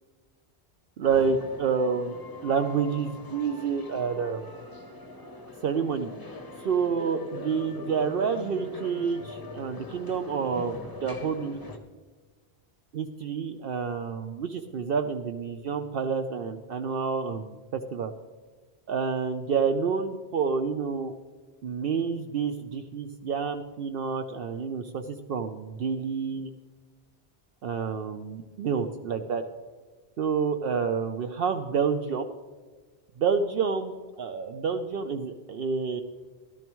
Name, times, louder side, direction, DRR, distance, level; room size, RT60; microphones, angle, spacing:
sound 1, 1.0-11.8, left 2 dB, 25° left, 0.8 m, -42 dB
voice 1, 1.0-4.4 5.6-6.1 6.6-11.6 12.9-18.1 18.9-21.1 21.6-26.5 27.6-29.4 30.2-32.3 33.2-36.0, right 6 dB, 65° right, 7 dB, 0.8 m, -29 dB
14.0 x 12.0 x 3.1 m, 1.4 s
omnidirectional pair, 1.1 m